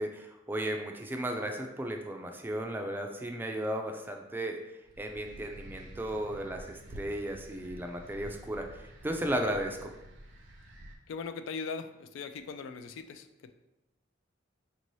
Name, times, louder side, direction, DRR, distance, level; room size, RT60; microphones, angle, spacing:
voice 1, 0.0-4.6 5.0-9.9, right 1 dB, 10° right, 3 dB, 0.3 m, -35 dB
sound 1, 4.9-11.0, right 1 dB, 70° right, 0.6 m, -49 dB
voice 2, 11.1-13.5, left 5 dB, 75° left, 9 dB, 0.3 m, -40 dB
4.3 x 2.7 x 3.0 m, 0.93 s
head